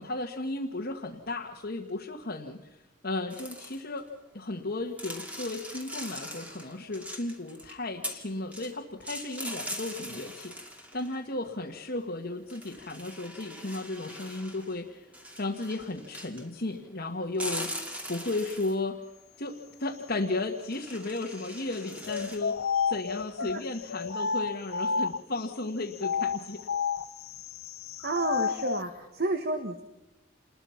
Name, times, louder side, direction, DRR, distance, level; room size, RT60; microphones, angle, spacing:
voice 1, 0.0-2.8 3.0-4.1 4.3-15.0 15.3-19.0 19.4-26.6, left 2 dB, 50° left, 0 dB, 1.7 m, -34 dB
sound 1, 3.3-4.0 5.0-7.8 8.0-8.7 9.0-11.2 12.5-14.8 15.1-16.5 17.3-18.8 20.6-22.4, equal, 5° right, 2.4 m, -41 dB
sound 2, 22.0-25.4 25.9-28.9, left 6 dB, 90° left, 0.7 m, -31 dB
voice 2, 28.0-29.8, right 2 dB, 50° right, 7 dB, 1.6 m, -30 dB
28.5 x 21.0 x 5.9 m, 0.97 s
head